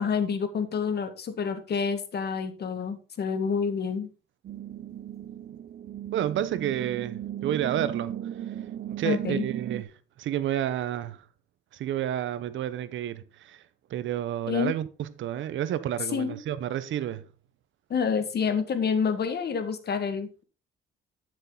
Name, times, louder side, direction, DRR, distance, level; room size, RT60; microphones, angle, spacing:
voice 1, 0.0-4.1 9.0-9.5 14.5-14.7 16.1-16.4 17.9-20.4, left 6 dB, 55° left, 1.8 m, -28 dB
sound 1, 4.4-9.8, right 11 dB, 55° right, 0.6 m, -36 dB
voice 2, 6.1-8.2 9.0-9.9 10.2-11.2 11.7-13.6 13.9-17.3, right 11 dB, 75° right, 0.9 m, -30 dB
12.0 x 6.6 x 3.9 m
cardioid pair, 90°, 20 cm